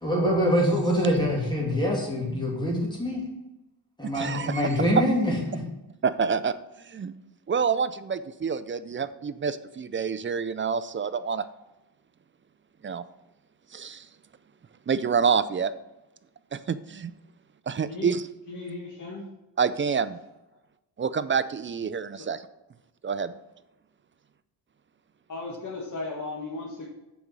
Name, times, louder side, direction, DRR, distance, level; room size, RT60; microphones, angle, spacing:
voice 1, 0.0-3.2 4.0-5.6, equal, 10° left, -3 dB, 2.7 m, -25 dB
voice 2, 4.1-4.6 6.0-7.1 7.5-11.4 12.8-13.0 13.7-14.1 14.9-15.7 16.5-17.1 17.7-18.2 19.6-20.2 21.0-22.4 23.0-23.3, right 6 dB, 30° right, 14 dB, 0.4 m, -27 dB
voice 3, 18.5-19.2 22.2-22.3 25.3-26.9, left 3 dB, 45° left, -4 dB, 1.8 m, -36 dB
7.0 x 5.2 x 6.1 m, 0.95 s
cardioid pair, 105°, 42 cm